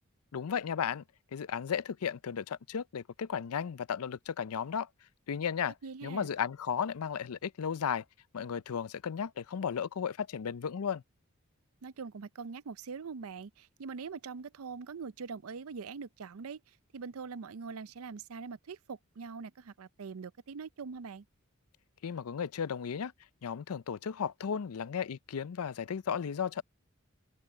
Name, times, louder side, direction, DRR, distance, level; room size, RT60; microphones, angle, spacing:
voice 1, 0.3-1.0 1.3-4.9 5.3-5.8 6.0-8.0 8.3-11.0 22.0-23.1 23.4-26.6, left 7 dB, 85° left, 0.5 m, -34 dB
voice 2, 5.8-6.3 11.8-16.6 16.9-21.2, right 5 dB, 75° right, 0.5 m, -43 dB
head